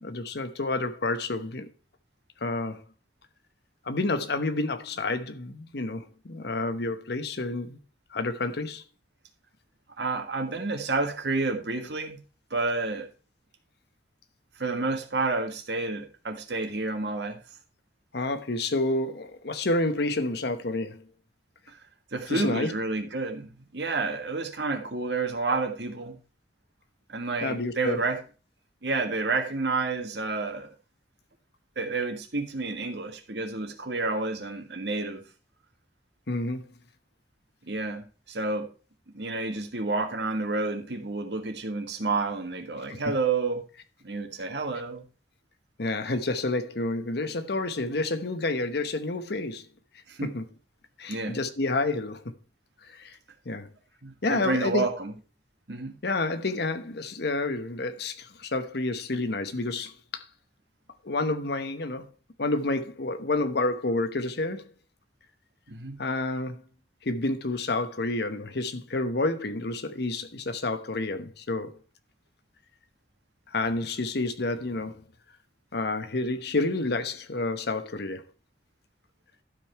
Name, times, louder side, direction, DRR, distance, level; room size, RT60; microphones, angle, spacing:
voice 1, 0.0-1.7 2.4-2.8 3.8-7.8 8.1-8.8 18.1-21.0 22.3-22.7 27.4-28.0 36.3-36.7 42.9-43.1 45.8-49.7 50.2-50.4 51.0-52.2 52.9-53.2 53.5-53.7 54.2-54.8 56.0-60.2 61.0-62.1 62.4-64.7 66.0-66.6 67.0-71.7 73.5-75.0 75.7-78.2, left 2 dB, 65° left, 1.0 m, -29 dB
voice 2, 10.0-12.2 12.5-13.1 14.6-17.4 21.7-21.8 22.1-26.2 27.1-28.2 28.8-30.7 31.7-35.2 37.7-38.7 39.1-43.6 44.0-45.0 50.1-50.3 51.1-51.4 54.0-55.1 55.7-55.9 65.7-66.0, right 3 dB, 70° right, 1.6 m, -30 dB
12.0 x 5.4 x 4.5 m
head